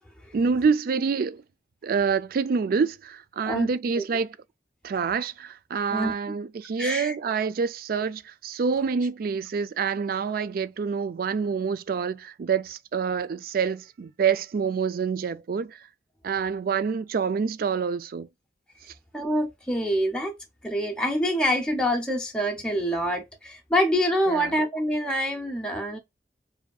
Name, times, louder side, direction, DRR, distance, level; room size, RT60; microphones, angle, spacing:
voice 1, 0.3-1.4 1.8-4.4 4.8-15.9 16.2-18.3 24.3-24.5, right 5 dB, 55° right, 0.3 m, -27 dB
voice 2, 6.8-7.1 19.1-20.3 20.6-26.0, equal, 5° left, 0.6 m, -26 dB
4.8 x 2.7 x 2.3 m
head